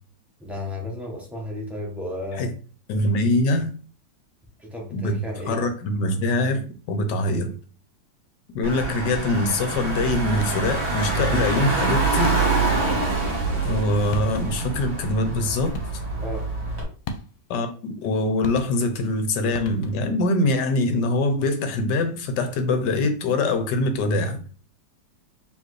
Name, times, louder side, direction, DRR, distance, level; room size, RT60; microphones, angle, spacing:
voice 1, 0.4-2.5 4.6-5.7 16.2-16.5, left 1 dB, ahead, 0.6 m, -33 dB
voice 2, 2.9-3.7 4.9-5.1 5.5-7.5 8.5-12.3 13.6-15.7 17.5-24.4, left 2 dB, 70° left, 1.3 m, -23 dB
Car / Engine, 8.6-16.8, right 3 dB, 35° right, 1.6 m, -25 dB
sound 1, 10.4-10.8 12.2-12.8 13.8-13.9 14.1-14.8 15.7-16.2 17.1-17.6 18.4-19.1 19.5-20.2, left 3 dB, 90° left, 1.3 m, -36 dB
4.5 x 3.2 x 3.1 m
omnidirectional pair, 2.0 m